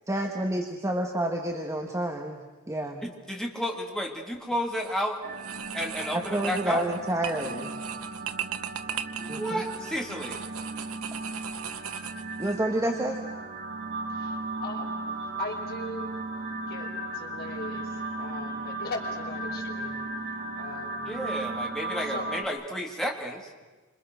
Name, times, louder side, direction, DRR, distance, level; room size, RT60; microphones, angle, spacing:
voice 1, 0.1-3.0 6.1-7.8 9.3-9.6 12.4-13.2, right 1 dB, 15° right, 2 dB, 1.6 m, -29 dB
voice 2, 3.0-5.2 5.7-6.8 9.2-10.4 21.0-23.5, equal, 5° left, 0 dB, 3.1 m, -32 dB
sound 1, 4.6-5.0 5.4-12.6, right 9 dB, 75° right, 1.0 m, -38 dB
sound 2, 5.2-22.4, right 2 dB, 55° right, 3.9 m, -36 dB
voice 3, 14.1-16.1 16.7-20.0 20.6-21.1 22.1-22.3, left 2 dB, 50° left, -1 dB, 5.6 m, -39 dB
28.5 x 26.5 x 6.5 m, 1.2 s
head